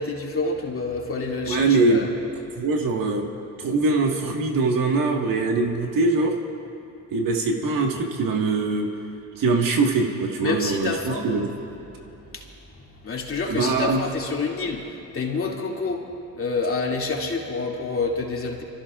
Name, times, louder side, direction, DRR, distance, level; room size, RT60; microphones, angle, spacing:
voice 1, 0.0-2.1 10.4-11.3 12.3-12.5 13.0-16.1 16.3-18.6, left 3 dB, 35° left, -2 dB, 2.6 m, -28 dB
voice 2, 1.5-2.0 2.6-3.3 3.6-6.4 7.1-8.9 9.4-11.5 13.5-14.0, right 3 dB, 65° right, 2 dB, 1.8 m, -22 dB
29.0 x 14.5 x 2.5 m, 2.9 s
cardioid pair, 80°, 36 cm